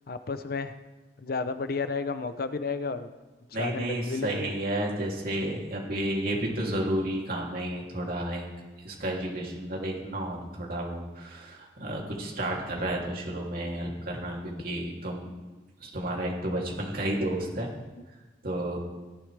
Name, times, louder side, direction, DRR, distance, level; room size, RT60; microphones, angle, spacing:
voice 1, 0.1-0.8 1.2-3.1 3.6-4.5, left 4 dB, 60° left, 11 dB, 0.7 m, -32 dB
voice 2, 3.5-8.4 8.8-15.3 15.8-17.7 18.4-18.8, right 1 dB, 55° right, -2 dB, 2.9 m, -31 dB
17.0 x 11.5 x 3.4 m, 1.2 s
head